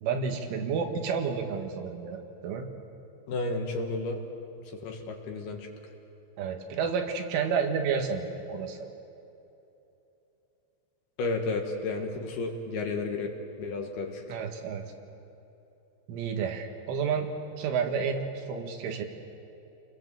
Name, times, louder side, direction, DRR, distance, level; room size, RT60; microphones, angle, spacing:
voice 1, 0.0-2.7 6.4-8.8 14.3-14.8 16.1-17.3 17.6-19.1, right 6 dB, 85° right, 4 dB, 4.2 m, -30 dB
voice 2, 3.3-4.2 4.7-5.7 11.2-13.3 13.6-14.4, left 3 dB, 65° left, 3 dB, 3.2 m, -32 dB
29.0 x 21.0 x 7.6 m, 2.9 s
omnidirectional pair, 5.5 m